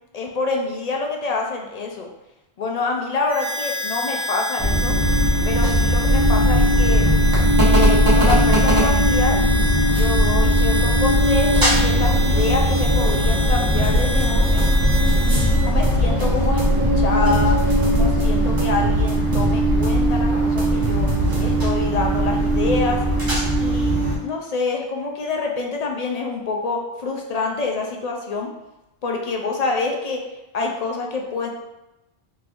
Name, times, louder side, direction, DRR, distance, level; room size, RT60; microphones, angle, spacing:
voice 1, 0.1-2.1 2.6-4.9 5.5-7.0 7.7-9.4 9.9-14.6 15.2-17.6 17.9-21.1 21.4-23.0 23.6-23.9 24.2-28.5 29.0-30.2 30.5-31.5, left 3 dB, 55° left, 1 dB, 0.4 m, -26 dB
Harmonica, 3.3-15.7, equal, 35° left, 1.5 m, -29 dB
sound 1, 4.6-24.2, equal, 20° right, 0.9 m, -18 dB
sound 2, 13.8-14.2 14.6-16.2 16.6-18.2 18.6-20.1 20.3-21.8, equal, 50° right, 0.9 m, -26 dB
3.8 x 3.0 x 2.5 m, 0.94 s
omnidirectional pair, 1.1 m